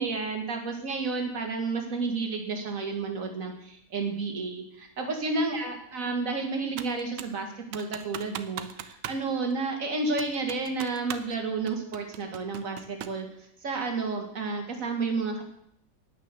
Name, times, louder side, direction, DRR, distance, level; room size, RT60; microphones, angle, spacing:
voice 1, 0.0-13.3 13.6-15.4, right 3 dB, 50° right, 3 dB, 2.3 m, -31 dB
Computer keyboard, 6.8-7.4 7.7-9.2 9.5-9.6 10.2-11.4 11.7-13.2, right 10 dB, 80° right, 1.4 m, -40 dB
9.8 x 9.1 x 6.8 m, 0.72 s
omnidirectional pair, 1.9 m